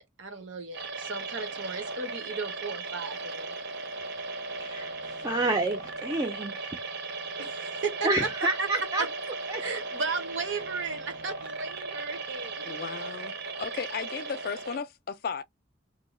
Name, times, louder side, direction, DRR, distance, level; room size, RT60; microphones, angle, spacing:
voice 1, 0.0-3.5 7.4-8.7 9.0-9.1 9.6-12.8, right 4 dB, 75° right, 1.0 m, -35 dB
sound 1, 0.7-14.8, right 3 dB, 55° right, 0.6 m, -37 dB
voice 2, 4.6-6.8 8.0-9.1 9.5-9.6, right 2 dB, 20° right, 0.4 m, -29 dB
voice 3, 12.7-15.4, left 6 dB, 50° left, 0.4 m, -35 dB
2.7 x 2.2 x 4.0 m
head